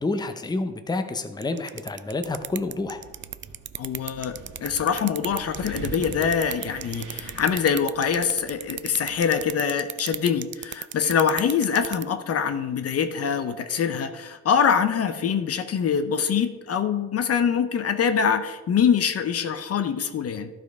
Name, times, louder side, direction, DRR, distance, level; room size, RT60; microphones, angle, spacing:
voice 1, 0.0-3.0, left 2 dB, 15° left, 8 dB, 0.7 m, -29 dB
sound 1, 1.4-12.0, right 11 dB, 40° right, 0.4 m, -33 dB
Wind, 2.1-9.5, right 4 dB, 85° right, 1.3 m, -43 dB
voice 2, 3.8-20.5, left 7 dB, 50° left, 9 dB, 0.7 m, -24 dB
12.0 x 5.2 x 4.7 m, 1.2 s
cardioid pair, 90°, 30 cm